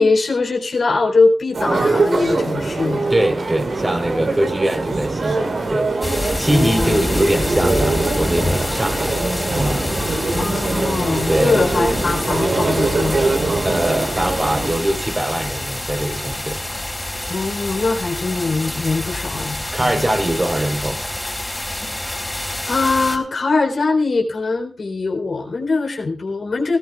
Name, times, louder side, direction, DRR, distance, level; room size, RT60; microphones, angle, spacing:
voice 1, 0.0-3.1 6.5-7.0 10.4-13.2 17.3-20.1 22.7-26.8, left 3 dB, 70° left, 2 dB, 3.9 m, -21 dB
sound 1, 1.5-14.7, right 3 dB, 70° right, 3.8 m, -22 dB
voice 2, 3.1-5.9 6.4-9.1 9.5-9.9 11.3-11.6 13.6-16.6 19.7-21.0, right 1 dB, 30° right, 4 dB, 4.0 m, -22 dB
sound 2, 6.0-23.2, left 1 dB, 20° left, 4.0 m, -26 dB
19.5 x 16.5 x 2.4 m, 0.36 s
cardioid pair, 45°, 0 cm